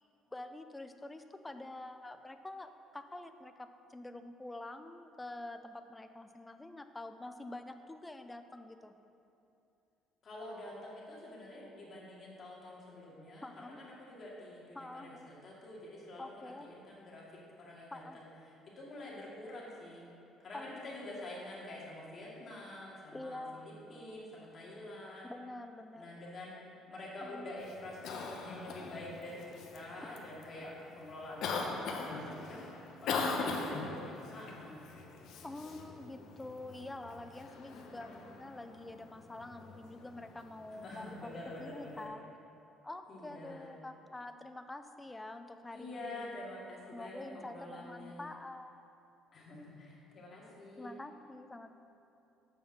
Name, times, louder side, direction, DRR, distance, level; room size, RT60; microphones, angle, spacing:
voice 1, 0.3-9.0 13.4-13.8 14.8-15.3 16.2-16.7 17.9-18.2 19.0-19.2 20.5-20.8 23.1-23.7 25.3-26.6 27.2-27.5 33.1-33.4 35.4-42.3 42.8-46.4 46.9-48.8 50.8-51.7, left 2 dB, 10° left, 8 dB, 0.4 m, -47 dB
voice 2, 10.2-17.2 17.6-18.3 18.8-20.0 20.4-25.3 26.0-26.6 26.9-34.9 37.7-38.3 40.8-42.0 43.1-43.7 45.7-48.3 49.3-50.9, left 1 dB, 35° left, -5 dB, 2.2 m, -47 dB
Cough, 27.6-42.1, left 4 dB, 65° left, 0.9 m, -42 dB
7.2 x 5.4 x 7.2 m, 2.8 s
cardioid pair, 135°, 0 cm